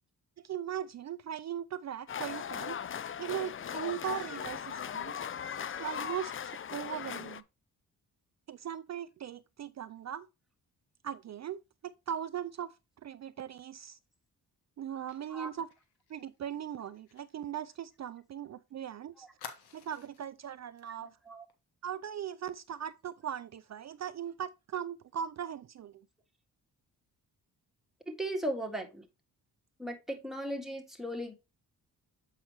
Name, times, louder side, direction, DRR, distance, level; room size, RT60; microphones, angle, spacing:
voice 1, 0.4-2.8 3.2-5.2 5.6-7.4 8.5-10.3 11.0-12.7 13.0-14.0 14.8-15.7 16.1-19.3 19.7-21.2 21.8-26.0, right 9 dB, 50° right, 0.4 m, -39 dB
sound 1, 2.1-7.4, left 8 dB, 35° left, 0.5 m, -38 dB
Fire, 15.1-18.5 18.8-18.9 19.4-20.4 20.8-20.9 21.3-21.5, left 6 dB, 90° left, 1.6 m, -52 dB
voice 2, 28.1-29.0 29.8-31.3, right 1 dB, ahead, 1.8 m, -36 dB
7.7 x 5.8 x 3.0 m
cardioid pair, 95°, 37 cm